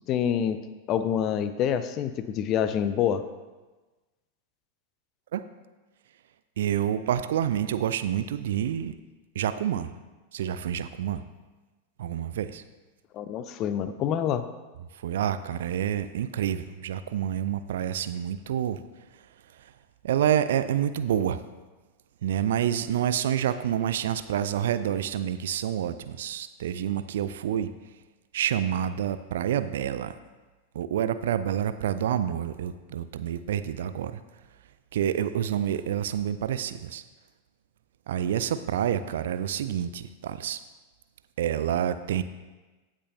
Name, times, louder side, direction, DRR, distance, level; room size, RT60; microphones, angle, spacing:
voice 1, 0.1-0.6 0.9-3.2 13.1-14.4, left 9 dB, 35° left, 11 dB, 0.5 m, -26 dB
voice 2, 6.6-9.0 9.4-9.9 10.3-11.2 12.0-12.6 15.0-18.8 19.6-19.7 20.0-21.4 22.2-27.7 28.3-30.1 30.7-34.2 34.9-37.0 38.1-40.6 41.4-42.2, right 10 dB, 60° right, 12 dB, 0.4 m, -28 dB
15.5 x 6.2 x 2.8 m, 1.2 s
figure-of-eight pair, 90°, 0 cm